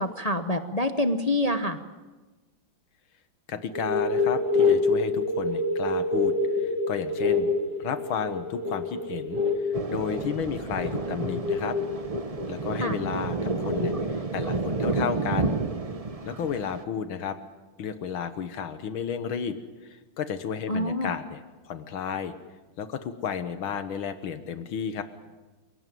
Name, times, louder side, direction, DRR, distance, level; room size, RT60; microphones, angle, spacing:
voice 1, 0.0-1.8 12.8-13.0 20.7-21.1, left 1 dB, 30° left, 8 dB, 0.7 m, -26 dB
voice 2, 3.5-7.5 7.8-11.8 12.5-15.6 16.3-17.4 17.8-19.6 19.8-22.3 22.8-25.0, left 7 dB, 80° left, 10 dB, 2.0 m, -32 dB
sound 1, 3.7-13.9, left 3 dB, 60° right, 2.6 m, -27 dB
Thunder, 9.7-16.8, right 3 dB, 30° right, 0.7 m, -30 dB
28.0 x 18.0 x 9.3 m, 1.2 s
omnidirectional pair, 2.2 m